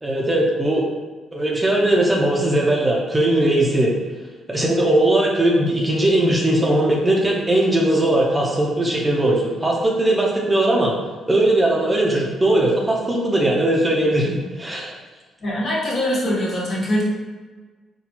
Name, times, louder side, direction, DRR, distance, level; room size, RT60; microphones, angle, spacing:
voice 1, 0.0-0.9 1.3-3.9 4.5-11.0 11.3-14.9, right 1 dB, 15° right, -2 dB, 0.6 m, -19 dB
voice 2, 15.4-17.0, equal, 50° left, -6 dB, 1.4 m, -22 dB
4.1 x 2.3 x 2.8 m, 1.3 s
cardioid pair, 90°, 0 cm